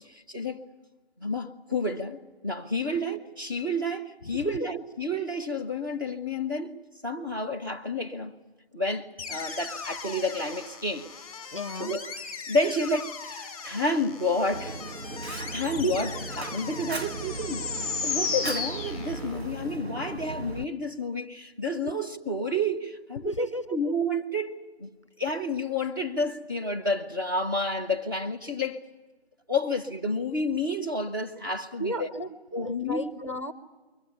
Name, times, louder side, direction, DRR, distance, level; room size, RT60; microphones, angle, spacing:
voice 1, 0.0-0.6 1.2-6.7 7.0-8.3 8.7-11.1 11.7-12.1 12.5-14.8 15.3-24.9 25.2-28.9 29.5-32.1 32.5-33.1, left 1 dB, 20° right, 0.9 m, -30 dB
sound 1, 9.2-19.5, left 5 dB, 5° left, 2.9 m, -36 dB
voice 2, 11.5-11.9 15.8-16.0 23.2-23.6 31.8-32.3 32.6-33.5, equal, 30° left, 0.7 m, -32 dB
Fire, 14.5-20.6, right 2 dB, 70° right, 1.3 m, -37 dB
22.5 x 18.0 x 9.8 m
figure-of-eight pair, 160°, 32 cm